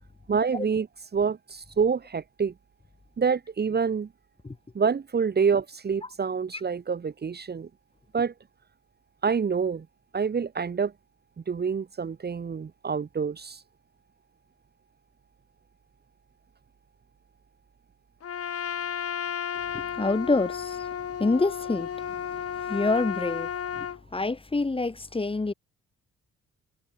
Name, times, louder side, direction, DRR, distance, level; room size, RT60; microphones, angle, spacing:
voice 1, 0.3-0.9 1.1-2.5 3.2-4.1 4.7-7.7 8.1-8.3 9.2-9.9 10.1-10.9 11.5-13.6, right 6 dB, 35° right, 1.2 m, -27 dB
Trumpet, 18.2-24.0, left 8 dB, 50° left, 2.2 m, -33 dB
voice 2, 19.7-22.4 22.7-23.9 24.1-25.5, left 3 dB, 20° left, 1.8 m, -27 dB
cardioid pair, 90°, 30 cm